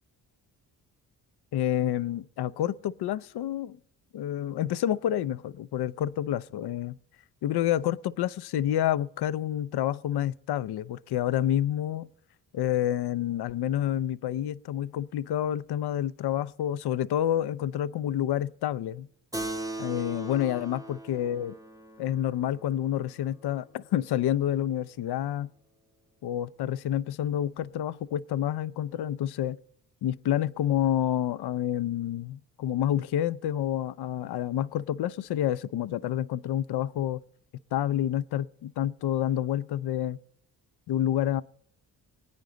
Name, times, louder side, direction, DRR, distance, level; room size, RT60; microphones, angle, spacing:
voice 1, 1.5-3.8 4.1-7.0 7.4-12.1 12.5-19.1 19.8-21.5 22.0-25.5 26.2-29.6 30.0-37.2 37.7-40.2 40.9-41.4, left 11 dB, 60° left, 0.6 m, -28 dB
Keyboard (musical), 19.3-24.2, right 2 dB, 10° right, 0.9 m, -40 dB
21.5 x 9.0 x 3.9 m
supercardioid pair, 50°, 45 cm